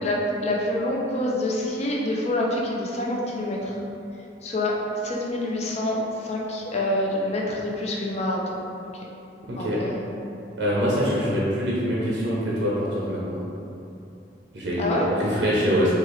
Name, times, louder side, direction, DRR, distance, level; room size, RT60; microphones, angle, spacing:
voice 1, 0.0-3.8 4.4-4.8 5.0-8.4 9.6-10.1 14.8-15.1, left 1 dB, 35° left, -3 dB, 0.5 m, -26 dB
voice 2, 9.5-9.8 10.6-13.5 14.5-15.9, equal, 75° right, -6 dB, 0.6 m, -24 dB
4.3 x 2.4 x 3.0 m, 2.7 s
head